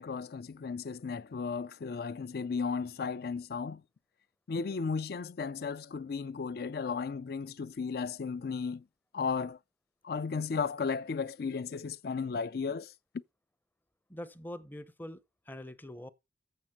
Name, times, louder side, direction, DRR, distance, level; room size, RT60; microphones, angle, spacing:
voice 1, 0.0-3.8 4.5-8.8 9.1-9.6 10.0-12.9, left 5 dB, 55° left, 0.4 m, -35 dB
voice 2, 14.1-16.1, left 1 dB, 10° left, 0.6 m, -44 dB
7.7 x 6.0 x 5.8 m
head